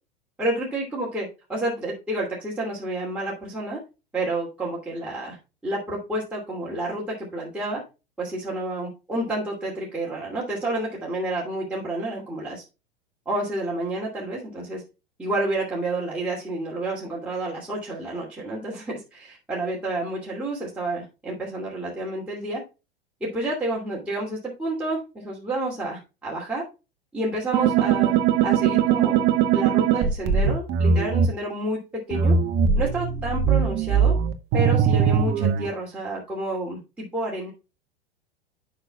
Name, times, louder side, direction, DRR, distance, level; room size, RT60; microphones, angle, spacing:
voice 1, 0.4-1.2 1.5-3.8 4.1-5.4 5.6-7.8 8.2-12.6 13.3-14.8 15.2-22.6 23.2-26.6 27.1-28.2 28.4-31.8 32.1-32.3 32.8-34.1 34.5-37.5, right 2 dB, 5° right, -6 dB, 2.6 m, -29 dB
sound 1, 27.5-31.3 32.1-35.7, right 7 dB, 35° right, 1.0 m, -20 dB
11.5 x 5.7 x 2.3 m, 0.28 s
figure-of-eight pair, 90°, 31 cm